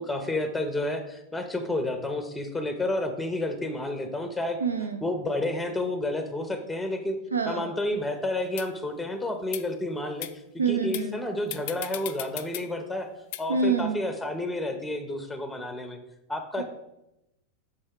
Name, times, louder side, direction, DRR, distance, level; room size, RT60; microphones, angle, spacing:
voice 1, 0.0-4.6 5.0-7.2 7.4-10.3 10.7-13.1 13.4-16.0 16.3-16.6, left 1 dB, 5° left, 7 dB, 0.8 m, -30 dB
voice 2, 4.6-5.0 7.3-7.7 10.6-11.2 13.5-14.0 16.6-16.7, right 5 dB, 75° right, 6 dB, 0.7 m, -26 dB
sound 1, 8.0-8.1 8.6-8.7 9.4-9.6 10.2-10.3 10.9-11.1 11.5-12.6 13.3-13.4, left 14 dB, 50° left, 0.3 m, -36 dB
6.7 x 5.3 x 3.7 m, 0.89 s
figure-of-eight pair, 90°, 0 cm